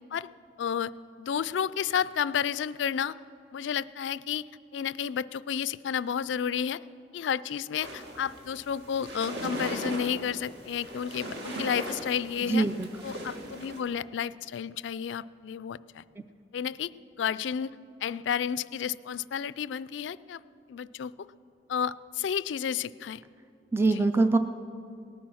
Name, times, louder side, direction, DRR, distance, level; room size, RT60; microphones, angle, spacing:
voice 1, 0.6-0.9 1.2-3.2 3.5-4.4 4.7-6.8 7.1-12.7 13.0-16.0 16.5-16.9 17.2-17.7 18.0-20.4 20.7-21.3 21.7-23.2 23.9-24.0, left 8 dB, 80° left, 18 dB, 0.3 m, -31 dB
sound 1, 7.8-13.8, right 1 dB, 65° right, 1.8 m, -38 dB
voice 2, 12.5-12.9 23.7-24.4, right 3 dB, 15° right, 8 dB, 0.4 m, -23 dB
18.5 x 10.0 x 6.3 m, 2.5 s
head